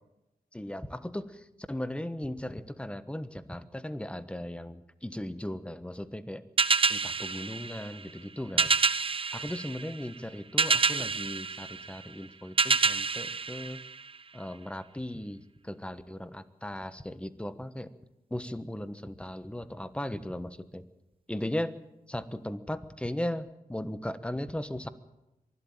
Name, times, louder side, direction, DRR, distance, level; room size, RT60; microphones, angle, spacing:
voice 1, 0.5-1.4 1.7-6.4 6.9-8.7 9.3-13.8 14.3-17.9 18.3-20.8 21.3-21.7 22.1-24.9, left 1 dB, 5° left, 12 dB, 1.2 m, -37 dB
sound 1, 6.6-14.4, right 4 dB, 35° right, 0.8 m, -28 dB
23.5 x 12.5 x 8.9 m, 0.97 s
wide cardioid pair, 90°, 15 cm